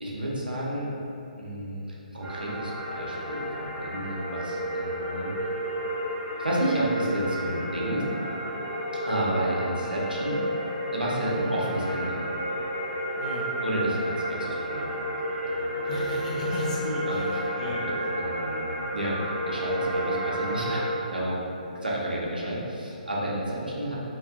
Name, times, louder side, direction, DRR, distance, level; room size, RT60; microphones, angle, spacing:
voice 1, 0.0-0.9 1.4-1.8 2.1-5.3 6.4-8.1 9.0-10.4 10.9-12.2 13.6-14.9 15.4-16.0 16.3-16.5 17.1-17.2 17.8-19.2 19.5-21.4 21.7-24.0, right 1 dB, 85° right, -5 dB, 0.7 m, -31 dB
sound 1, 2.2-20.9, equal, ahead, 1.0 m, -31 dB
voice 2, 11.2-11.6 13.1-13.5 15.9-17.8, left 1 dB, 50° left, -6 dB, 0.7 m, -34 dB
2.7 x 2.5 x 2.4 m, 2.7 s
figure-of-eight pair, 140°, 5 cm